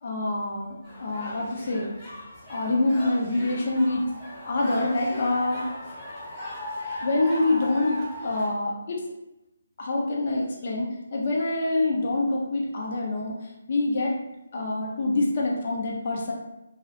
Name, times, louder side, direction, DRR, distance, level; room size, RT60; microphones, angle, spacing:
voice 1, 0.0-4.1 4.5-5.6 7.0-9.0 9.8-13.4 13.7-14.2 14.5-16.3, left 2 dB, 45° left, -2 dB, 0.5 m, -26 dB
sound 1, 0.8-8.5, left 1 dB, 10° left, 0.8 m, -38 dB
2.3 x 2.0 x 2.8 m, 0.94 s
figure-of-eight pair, 150°, 0 cm